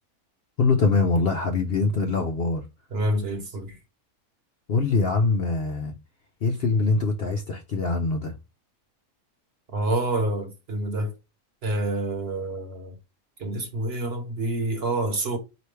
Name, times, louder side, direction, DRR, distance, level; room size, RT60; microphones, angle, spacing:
voice 1, 0.6-2.6 4.7-5.9 6.4-8.3, left 4 dB, 55° left, 0.7 m, -23 dB
voice 2, 2.9-3.8 9.7-11.1 11.6-13.0 13.4-15.4, right 1 dB, 50° right, 1.1 m, -27 dB
4.5 x 3.0 x 3.2 m
omnidirectional pair, 1.5 m